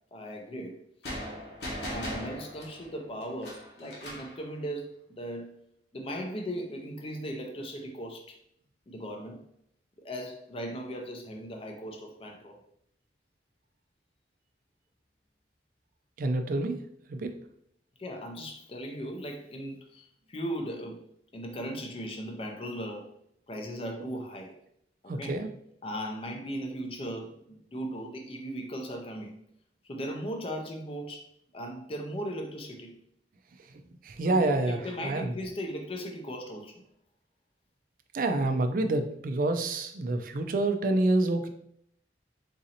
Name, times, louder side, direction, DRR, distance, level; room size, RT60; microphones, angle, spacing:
voice 1, 0.1-0.8 1.8-5.5 5.9-8.4 8.9-9.4 10.0-12.6 18.0-21.0 21.3-23.1 23.5-24.6 25.0-25.4 25.8-29.4 29.8-31.3 31.5-32.9 34.2-36.8, equal, 30° left, 3 dB, 0.4 m, -38 dB
sound 1, 1.0-4.4, equal, 75° left, 1.0 m, -39 dB
voice 2, 16.2-16.8 17.1-17.3 25.1-25.5 34.0-35.3 38.1-41.5, right 2 dB, 50° right, 7 dB, 0.4 m, -27 dB
4.0 x 2.6 x 2.8 m, 0.71 s
head